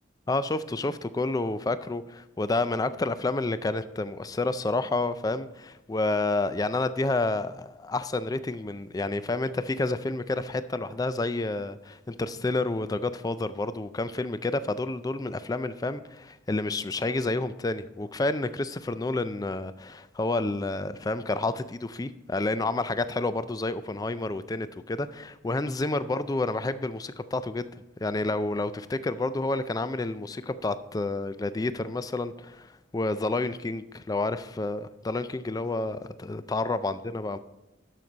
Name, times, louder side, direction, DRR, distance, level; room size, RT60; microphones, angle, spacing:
voice 1, 0.3-27.7 28.0-37.4, left 2 dB, 20° left, 13 dB, 0.3 m, -29 dB
12.0 x 6.1 x 4.0 m, 0.96 s
head